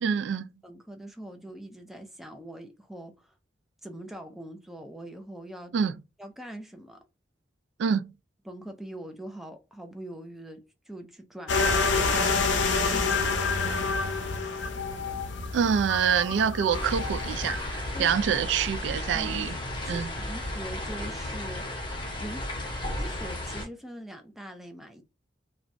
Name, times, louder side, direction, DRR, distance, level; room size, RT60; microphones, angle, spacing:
voice 1, 0.0-0.5 5.7-5.9 7.8-8.0 15.5-19.6 19.9-20.1, right 7 dB, 85° right, 0.3 m, -26 dB
voice 2, 0.6-3.3 3.8-5.7 6.2-7.0 8.4-12.4 12.9-13.9 17.9-18.5 19.1-19.5 19.9-21.7 22.2-22.5 23.0-25.0, right 1 dB, ahead, 0.4 m, -42 dB
sound 1, 11.5-17.7, left 4 dB, 85° left, 0.5 m, -27 dB
sound 2, 16.7-23.7, left 1 dB, 25° left, 0.7 m, -34 dB
2.9 x 2.2 x 2.5 m
head